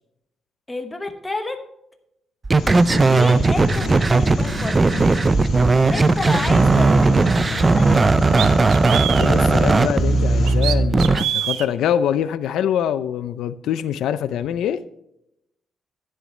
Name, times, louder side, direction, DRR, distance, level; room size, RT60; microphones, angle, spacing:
voice 1, 0.7-1.6 3.0-4.9 5.9-8.2, left 2 dB, 10° left, 6 dB, 1.1 m, -30 dB
sound 1, 2.4-11.2, right 3 dB, 20° right, 0.3 m, -17 dB
sound 2, 2.6-10.6, left 4 dB, 50° left, 2.1 m, -30 dB
sound 3, 7.6-7.7 8.3-9.3 10.4-11.7, right 11 dB, 85° right, 0.7 m, -25 dB
voice 2, 9.1-14.8, left 9 dB, 75° left, 13 dB, 0.5 m, -24 dB
11.0 x 10.0 x 3.2 m, 0.82 s
cardioid pair, 170°, 0 cm